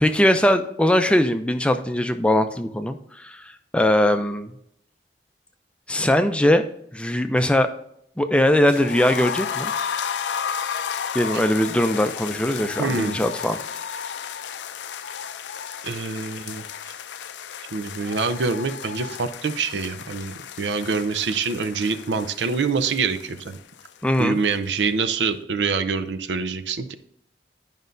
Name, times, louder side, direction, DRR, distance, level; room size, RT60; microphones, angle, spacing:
voice 1, 0.0-4.5 5.9-6.6 6.9-7.7 8.2-9.7 11.1-13.6 24.0-24.4, left 1 dB, 5° left, 8 dB, 0.4 m, -20 dB
sound 1, 8.7-24.5 24.8-24.9 25.2-25.3, left 7 dB, 90° left, 0.4 m, -33 dB
voice 2, 12.8-13.2 15.8-16.6 17.7-23.6 24.2-27.0, right 4 dB, 85° right, 10 dB, 0.6 m, -25 dB
11.0 x 5.3 x 2.6 m, 0.73 s
head